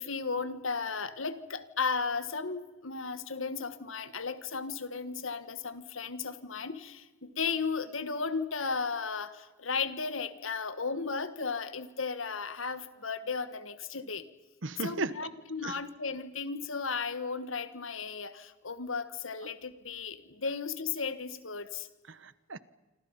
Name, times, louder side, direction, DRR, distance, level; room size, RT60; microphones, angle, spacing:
voice 1, 0.0-14.3 14.8-21.9, left 5 dB, 85° left, 12 dB, 1.6 m, -35 dB
voice 2, 14.6-15.4 15.6-15.8 19.4-19.5 20.4-20.6 22.0-22.6, right 3 dB, 70° right, 15 dB, 1.1 m, -37 dB
28.0 x 26.0 x 5.5 m, 1.2 s
head